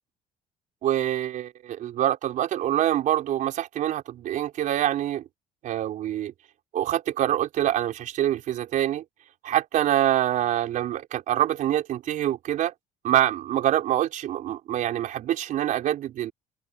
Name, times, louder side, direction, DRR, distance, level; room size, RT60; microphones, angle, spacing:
voice 1, 0.8-5.2 5.6-6.3 6.7-9.0 9.4-12.7 13.0-16.3, right 12 dB, 65° right, 4.8 m, -25 dB
cardioid pair, 125°, 14 cm